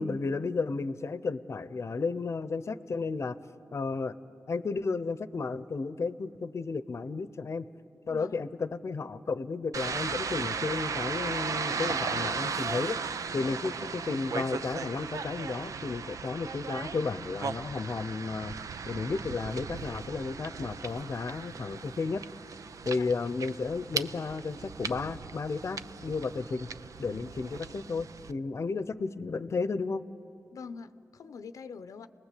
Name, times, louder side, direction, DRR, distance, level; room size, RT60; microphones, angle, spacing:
voice 1, 0.0-3.4 3.7-4.2 4.5-7.6 8.1-13.0 13.3-18.6 18.9-22.2 22.8-26.7 27.0-30.0, left 4 dB, 55° left, 14 dB, 0.8 m, -33 dB
sound 1, 9.7-28.3, right 5 dB, 75° right, 0.7 m, -37 dB
voice 2, 30.5-32.1, left 5 dB, 90° left, 11 dB, 0.7 m, -44 dB
30.0 x 20.0 x 8.4 m, 2.6 s
cardioid pair, 60°, 6 cm